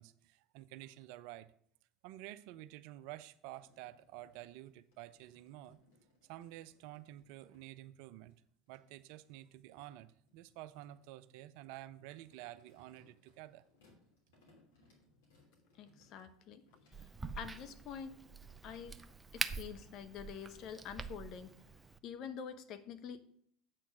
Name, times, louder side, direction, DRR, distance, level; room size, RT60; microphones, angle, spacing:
voice 1, 0.0-1.5 2.0-5.8 6.3-8.3 8.7-13.6, right 14 dB, 65° right, 0.4 m, -50 dB
sound 1, 3.5-7.6 8.3-17.7, left 2 dB, 75° left, 3.0 m, -70 dB
voice 2, 15.8-16.6 17.0-17.1 17.4-18.2 18.6-19.0 19.3-21.5 22.0-23.2, left 7 dB, 50° left, 0.8 m, -46 dB
Crack, 16.9-22.0, right 4 dB, 15° right, 0.5 m, -44 dB
8.1 x 4.4 x 6.2 m
hypercardioid pair, 75°, 0 cm